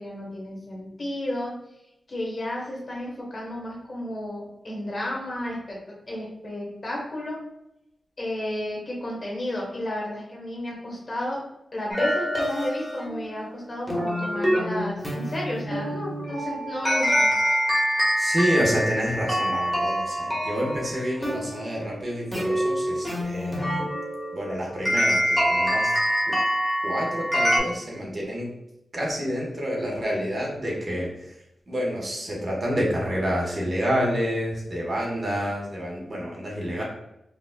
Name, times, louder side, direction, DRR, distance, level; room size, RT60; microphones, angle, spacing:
voice 1, 0.0-1.5 2.1-5.8 6.1-7.4 8.2-11.4 11.7-17.3, left 1 dB, 40° left, -4 dB, 1.3 m, -32 dB
sound 1, 11.9-27.6, equal, 5° left, 1.2 m, -26 dB
voice 2, 18.2-23.8 24.3-26.0 26.3-26.4 26.8-28.5 28.9-31.4 31.7-36.8, equal, 40° right, -3 dB, 1.1 m, -28 dB
4.8 x 2.3 x 2.2 m, 0.84 s
wide cardioid pair, 110°, 0 cm